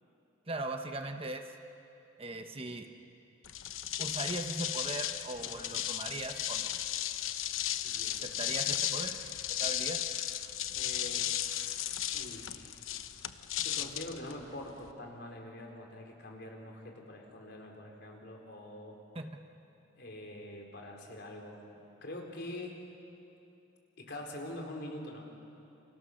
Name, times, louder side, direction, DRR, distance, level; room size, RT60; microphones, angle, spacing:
voice 1, 0.5-1.4 2.2-2.9 4.0-6.7 8.1-9.2 9.5-10.0 19.1-19.3, right 2 dB, 30° right, 5 dB, 1.1 m, -39 dB
sound 1, 3.4-14.9, left 11 dB, 85° left, 0.9 m, -35 dB
voice 2, 5.4-5.9 7.8-8.3 10.7-11.6 12.1-12.8 13.6-19.0 20.0-21.6 22.0-22.7 24.0-25.3, left 1 dB, 55° left, 1 dB, 4.2 m, -45 dB
29.5 x 28.5 x 6.6 m, 2.8 s
head